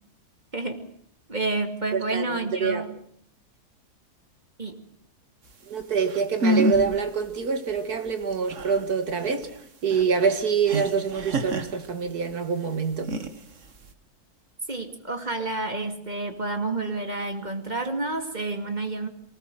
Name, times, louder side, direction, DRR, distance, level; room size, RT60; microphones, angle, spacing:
voice 1, 0.5-0.9 1.3-2.9 4.6-4.8 14.7-19.1, right 2 dB, 30° right, 2.5 m, -29 dB
voice 2, 1.9-2.8 5.7-9.5 9.8-13.1, right 6 dB, 75° right, 2.4 m, -25 dB
sound 1, 5.8-5.9 6.1-7.0 7.3-7.4 7.8-12.3 12.9-13.9, right 1 dB, 55° right, 1.8 m, -28 dB
24.0 x 19.0 x 7.7 m
omnidirectional pair, 1.6 m